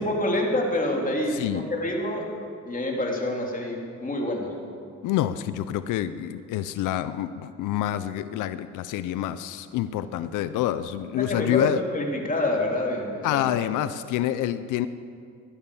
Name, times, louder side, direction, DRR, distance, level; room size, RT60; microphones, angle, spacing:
voice 1, 0.0-2.3 2.6-4.5 11.1-13.5, left 1 dB, 25° left, 0 dB, 3.3 m, -27 dB
voice 2, 1.3-1.7 5.0-11.8 13.2-14.9, left 12 dB, 90° left, 13 dB, 0.6 m, -27 dB
16.5 x 12.0 x 7.0 m, 2.4 s
cardioid pair, 90°, 30 cm